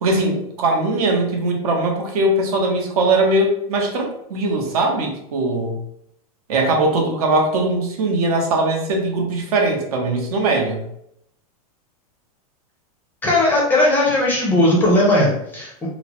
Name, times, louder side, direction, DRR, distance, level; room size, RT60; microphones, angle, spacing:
voice 1, 0.0-5.8 6.5-10.8, right 2 dB, 75° right, 2 dB, 0.8 m, -20 dB
voice 2, 13.2-15.9, left 1 dB, 10° left, -3 dB, 0.4 m, -17 dB
2.9 x 2.0 x 2.8 m, 0.74 s
supercardioid pair, 165°, 19 cm